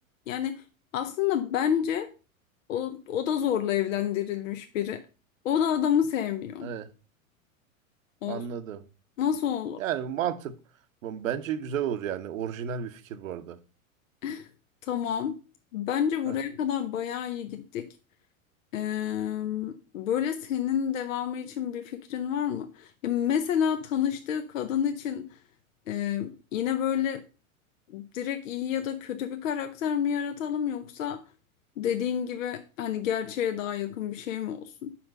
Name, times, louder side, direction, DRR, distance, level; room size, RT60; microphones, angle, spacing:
voice 1, 0.3-0.6 0.9-2.1 2.7-5.0 5.4-6.7 8.2-8.4 9.2-9.8 14.2-14.5 14.8-15.4 15.7-17.9 18.7-25.4 25.9-27.2 27.9-31.2 31.8-35.0, left 9 dB, 70° left, 0.8 m, -29 dB
voice 2, 6.6-6.9 8.3-8.9 9.8-10.6 11.0-13.6 16.3-16.4, right 9 dB, 70° right, 0.9 m, -32 dB
5.7 x 5.2 x 5.2 m
hypercardioid pair, 95°, 41 cm